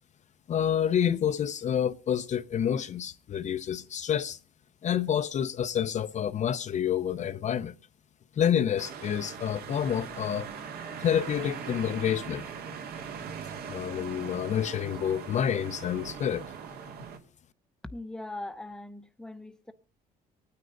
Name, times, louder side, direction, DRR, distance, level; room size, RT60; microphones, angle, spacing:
voice 1, 0.5-4.4 4.8-7.7 8.4-10.5 11.0-12.4 13.7-16.4, left 9 dB, 45° left, 0.7 m, -28 dB
sound 1, 8.8-17.2, right 6 dB, 65° right, 2.2 m, -40 dB
voice 2, 17.8-19.7, left 2 dB, 5° left, 0.8 m, -40 dB
24.0 x 9.5 x 3.9 m
cardioid pair, 110°, 17 cm